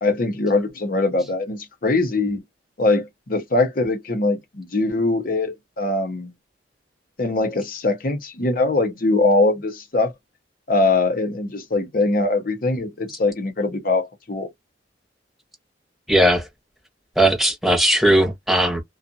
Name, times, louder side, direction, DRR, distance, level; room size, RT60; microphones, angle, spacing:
voice 1, 0.0-2.4 2.8-6.3 7.2-10.1 10.7-14.5, left 2 dB, 50° left, 0.8 m, -22 dB
voice 2, 16.1-16.5 17.2-18.8, right 1 dB, ahead, 0.9 m, -18 dB
2.4 x 2.4 x 2.7 m
head